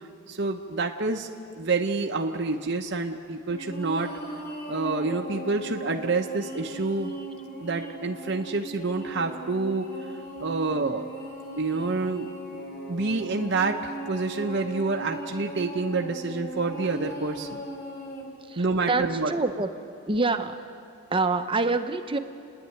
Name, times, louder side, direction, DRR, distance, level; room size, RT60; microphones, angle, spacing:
voice 1, 0.3-1.3 1.6-4.1 4.7-7.1 7.6-9.9 10.4-11.1 11.6-12.6 12.9-17.6 18.6-19.3, right 3 dB, 55° right, 2 dB, 0.8 m, -28 dB
sound 1, 3.5-18.2, right 1 dB, 45° left, 4.5 m, -38 dB
voice 2, 18.5-19.7 20.1-20.6 21.1-22.2, right 3 dB, 25° right, 7 dB, 0.8 m, -26 dB
30.0 x 10.5 x 9.1 m, 2.6 s
head